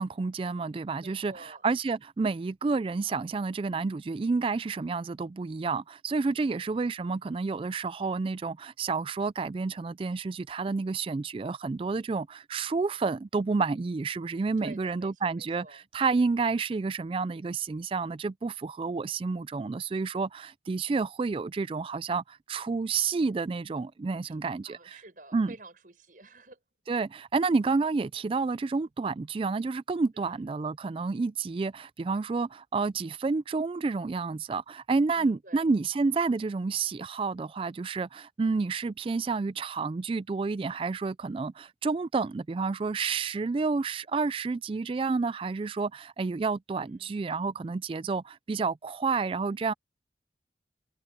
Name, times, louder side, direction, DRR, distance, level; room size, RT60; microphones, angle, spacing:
voice 1, 0.0-24.8 25.3-25.5 26.9-49.7, right 4 dB, 30° right, 0.3 m, -30 dB
voice 2, 1.0-1.6 6.3-6.7 14.4-15.9 24.2-24.4 24.6-26.6 30.1-30.4 35.2-35.6 46.8-47.2, right 2 dB, 50° right, 6.5 m, -50 dB
open air
head